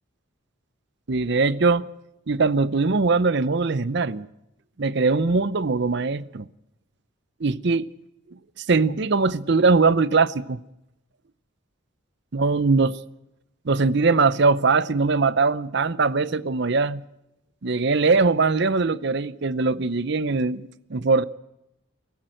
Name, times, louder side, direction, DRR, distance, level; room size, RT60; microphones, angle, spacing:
voice 1, 1.1-1.9 2.3-4.3 4.8-6.5 7.4-7.9 8.6-10.6 12.3-13.0 13.7-17.0 17.6-21.2, right 4 dB, 55° right, 0.6 m, -21 dB
23.0 x 14.5 x 7.7 m
head